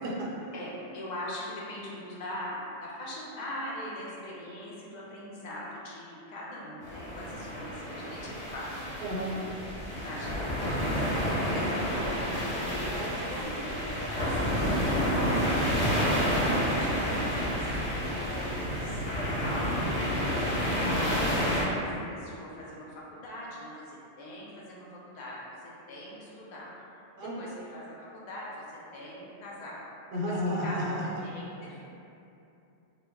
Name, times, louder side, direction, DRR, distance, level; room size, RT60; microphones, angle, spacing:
voice 1, 0.0-0.4 9.0-9.3 16.4-16.6 27.2-27.3 30.1-31.0, equal, 70° right, -5 dB, 0.8 m, -31 dB
voice 2, 0.5-8.7 9.2-9.4 10.0-12.2 12.7-16.0 16.6-19.7 20.3-29.8 30.2-31.8, left 1 dB, 70° left, -6 dB, 0.4 m, -42 dB
sound 1, 6.8-21.6, equal, 35° left, 0.8 m, -29 dB
2.2 x 2.0 x 3.4 m, 2.8 s
omnidirectional pair, 1.3 m